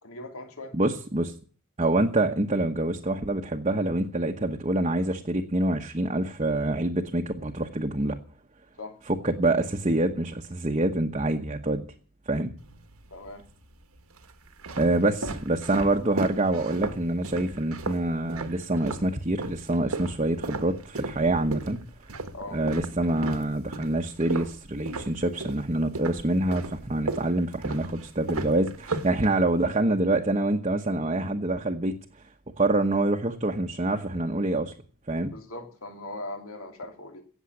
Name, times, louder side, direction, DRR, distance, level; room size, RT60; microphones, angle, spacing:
voice 1, 0.0-0.7 8.8-8.9 13.1-13.4 22.3-22.6 35.3-37.2, left 2 dB, 70° left, 4 dB, 3.0 m, -39 dB
voice 2, 0.7-1.3 1.8-8.2 9.1-11.9 12.3-12.5 14.8-21.8 22.5-31.9 32.6-34.7 35.1-35.3, right 2 dB, 30° right, 2 dB, 1.1 m, -26 dB
sound 1, 12.6-13.3 14.0-19.1 19.4-25.7 26.0-29.7, right 2 dB, 75° right, 1.4 m, -35 dB
16.5 x 7.3 x 8.4 m, 0.42 s
head